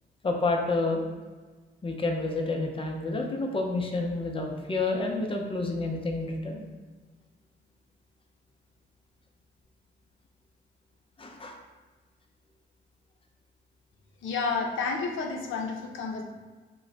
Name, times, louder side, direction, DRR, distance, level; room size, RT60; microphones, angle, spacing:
voice 1, 0.2-1.0 1.8-6.6 11.2-11.6, left 3 dB, 25° left, 2 dB, 0.5 m, -29 dB
voice 2, 14.2-16.2, left 4 dB, 75° left, 2 dB, 0.5 m, -30 dB
3.0 x 2.1 x 3.9 m, 1.4 s
cardioid pair, 90°, 20 cm